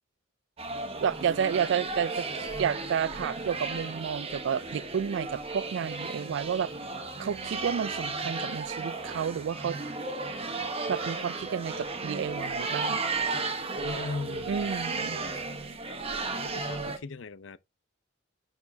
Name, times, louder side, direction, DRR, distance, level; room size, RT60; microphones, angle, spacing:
sound 1, 0.6-17.0, right 3 dB, 30° right, 1.1 m, -34 dB
voice 1, 1.0-6.7 7.2-9.8 10.9-13.0 14.5-15.2, right 7 dB, 70° right, 0.3 m, -31 dB
voice 2, 13.8-14.9 16.5-17.6, left 3 dB, 70° left, 0.6 m, -38 dB
10.5 x 4.2 x 2.8 m
head